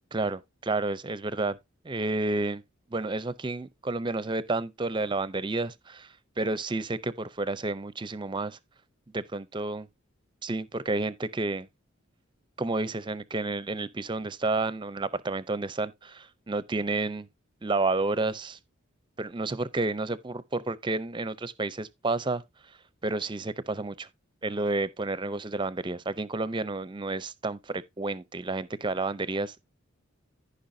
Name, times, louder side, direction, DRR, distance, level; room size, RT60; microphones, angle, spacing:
voice 1, 0.1-1.6 1.8-2.6 2.9-8.6 9.1-9.9 10.4-11.7 12.6-17.3 17.6-18.6 19.2-22.4 23.0-24.1 24.4-29.6, right 2 dB, 25° right, 0.6 m, -30 dB
14.5 x 5.4 x 2.7 m
head